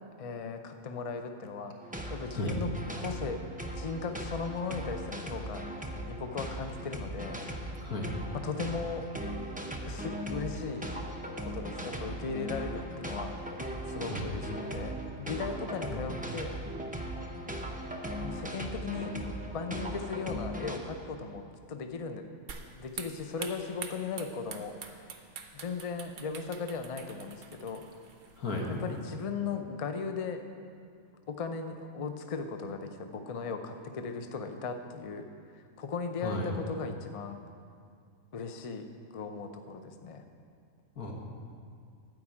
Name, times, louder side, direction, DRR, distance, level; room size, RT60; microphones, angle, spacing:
voice 1, 0.2-1.8 2.1-3.4 3.7-5.7 6.1-7.4 8.3-9.1 9.8-10.9 11.4-13.3 13.9-16.6 18.1-19.2 19.5-22.3 22.7-25.0 25.5-27.9 28.7-30.5 31.3-35.3 35.5-37.4 38.3-40.2, left 5 dB, 50° left, 6 dB, 0.4 m, -37 dB
sound 1, 1.8-20.8, right 1 dB, 10° right, 0.5 m, -38 dB
voice 2, 7.8-8.1 14.0-14.3 15.9-16.0 28.4-28.7 36.2-36.5 41.0-41.1, left 1 dB, 90° left, -1 dB, 2.0 m, -34 dB
sound 2, 22.5-29.1, right 5 dB, 65° right, 1.2 m, -46 dB
12.5 x 4.7 x 8.7 m, 2.3 s
omnidirectional pair, 1.5 m